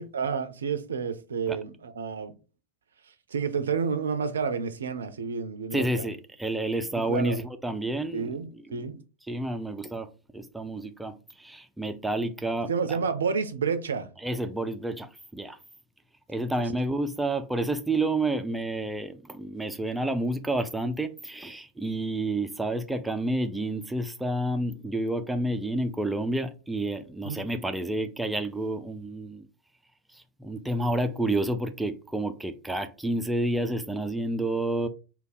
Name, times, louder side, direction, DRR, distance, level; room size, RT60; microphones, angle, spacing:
voice 1, 0.0-2.3 3.3-6.1 7.0-7.4 8.1-9.0 12.7-14.1 27.2-27.5, right 6 dB, 70° right, 0.4 m, -30 dB
voice 2, 5.7-8.4 8.7-8.9 9.3-10.1 10.3-13.0 14.2-15.6 16.3-29.5 30.1-34.9, right 1 dB, 5° right, 0.4 m, -30 dB
3.3 x 2.2 x 4.0 m
figure-of-eight pair, 90°, 0 cm